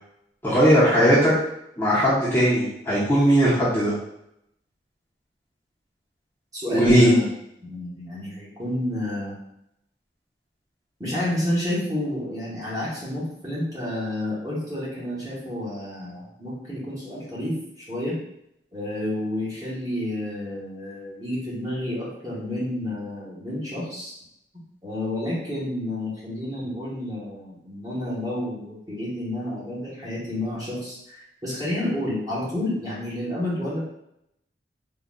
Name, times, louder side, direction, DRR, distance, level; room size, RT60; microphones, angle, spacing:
voice 1, 0.4-1.3 1.8-3.9 6.7-7.1, equal, 10° left, -10 dB, 0.8 m, -18 dB
voice 2, 6.5-7.3 7.6-9.4 11.0-18.2 18.7-24.1 24.8-33.8, left 1 dB, 20° right, -8 dB, 1.0 m, -30 dB
3.7 x 2.3 x 2.2 m, 0.79 s
head